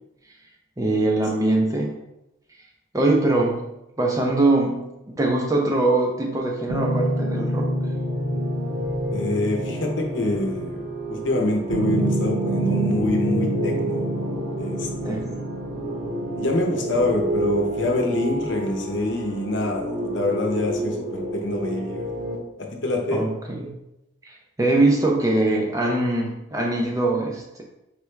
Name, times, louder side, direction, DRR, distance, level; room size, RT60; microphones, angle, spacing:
voice 1, 0.8-2.0 2.9-3.7 4.0-7.7 15.0-15.4 23.1-23.7 24.3-27.6, right 2 dB, 15° right, 0 dB, 0.5 m, -22 dB
sound 1, 6.7-22.3, right 1 dB, 75° right, 1.7 m, -27 dB
voice 2, 9.1-14.1 14.6-15.4 16.3-22.1 22.8-23.3, left 1 dB, 70° left, 1 dB, 0.9 m, -25 dB
4.5 x 3.3 x 3.3 m, 0.89 s
head